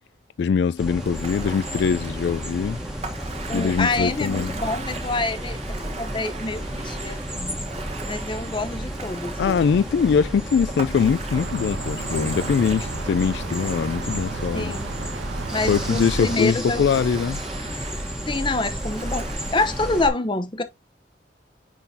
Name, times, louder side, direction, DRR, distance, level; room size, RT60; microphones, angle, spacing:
voice 1, 0.4-2.8 3.5-4.5 9.4-14.8 15.7-17.4, left 6 dB, 70° left, 0.3 m, -22 dB
sound 1, 0.8-20.1, equal, 5° right, 1.2 m, -32 dB
Ocean, 1.0-20.0, right 3 dB, 35° right, 1.2 m, -38 dB
voice 2, 3.5-7.6 8.1-9.6 14.5-14.9 15.5-16.9 18.3-20.6, left 2 dB, 25° left, 0.8 m, -27 dB
sound 2, 11.3-16.4, right 4 dB, 80° right, 0.7 m, -34 dB
9.9 x 3.8 x 2.7 m
head